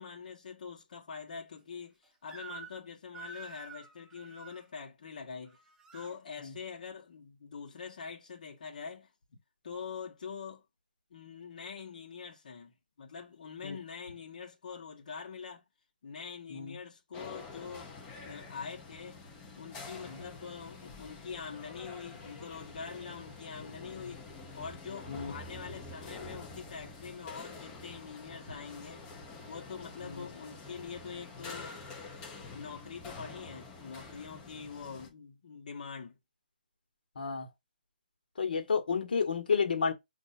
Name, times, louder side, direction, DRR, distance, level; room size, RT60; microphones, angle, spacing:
voice 1, 0.0-5.6 5.9-9.1 9.6-10.6 11.1-15.6 16.0-17.9 18.2-19.2 19.6-24.3 24.5-29.0 29.5-31.9 32.5-36.2, left 6 dB, 60° left, 1.3 m, -44 dB
Crying sobbing / Screech, 2.3-2.9 3.1-4.6 5.5-6.1, right 5 dB, 10° right, 0.6 m, -48 dB
sound 1, 17.1-35.1, left 3 dB, 15° left, 1.1 m, -47 dB
voice 2, 37.1-37.5 38.4-39.9, left 5 dB, 75° left, 1.3 m, -31 dB
5.5 x 2.7 x 2.6 m
hypercardioid pair, 160°, 5 cm